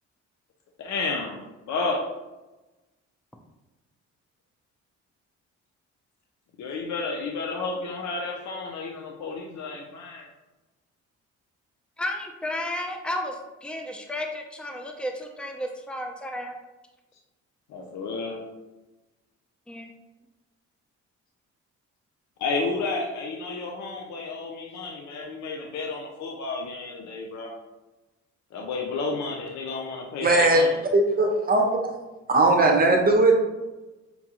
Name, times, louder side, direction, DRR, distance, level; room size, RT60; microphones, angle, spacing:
voice 1, 0.8-2.0 6.6-10.2 17.7-18.4 22.4-27.5 28.5-30.7, left 3 dB, 70° left, 0 dB, 0.7 m, -31 dB
voice 2, 12.0-16.6 19.7-19.9, left 1 dB, 5° left, 2 dB, 0.5 m, -33 dB
voice 3, 30.2-32.0 32.3-33.3, right 2 dB, 30° right, 1 dB, 0.8 m, -19 dB
5.3 x 2.3 x 2.9 m, 1.1 s
cardioid pair, 90°, 30 cm